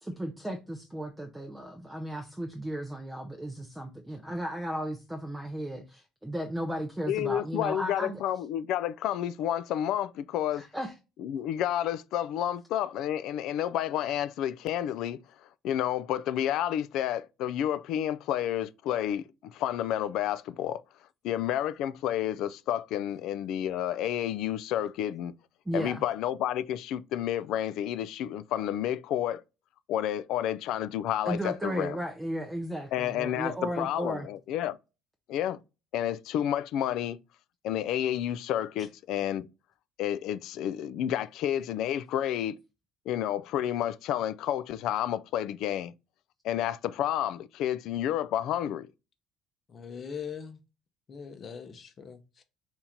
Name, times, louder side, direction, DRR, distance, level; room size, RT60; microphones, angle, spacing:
voice 1, 0.0-8.2 10.5-10.9 25.7-26.0 31.3-34.3, right 1 dB, 5° right, 0.6 m, -35 dB
voice 2, 7.1-10.6 11.2-15.2 15.6-20.8 21.2-25.3 25.7-29.4 29.9-32.0 32.9-34.8 35.3-35.6 35.9-37.2 37.6-39.5 40.0-42.5 43.1-45.9 46.4-48.9, left 11 dB, 65° left, 0.3 m, -30 dB
voice 3, 49.7-50.6 51.1-52.4, left 7 dB, 35° left, 0.8 m, -41 dB
4.4 x 2.8 x 3.7 m
cardioid pair, 145°, 0 cm